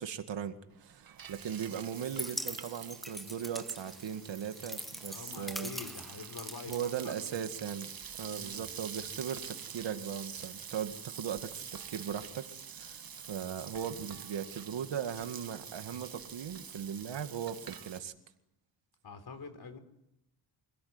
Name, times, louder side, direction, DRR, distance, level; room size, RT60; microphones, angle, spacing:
voice 1, 0.0-5.7 6.7-7.9 8.2-13.0 13.3-18.1, right 8 dB, 80° right, 9 dB, 2.1 m, -38 dB
Frying (food), 0.7-18.0, right 7 dB, 55° right, 1.5 m, -46 dB
sound 1, 1.9-7.6, equal, ahead, 1.3 m, -43 dB
voice 2, 5.1-7.4 8.2-8.7 19.0-19.8, left 4 dB, 60° left, 8 dB, 4.6 m, -46 dB
26.0 x 17.0 x 9.7 m, 0.81 s
cardioid pair, 70°, 43 cm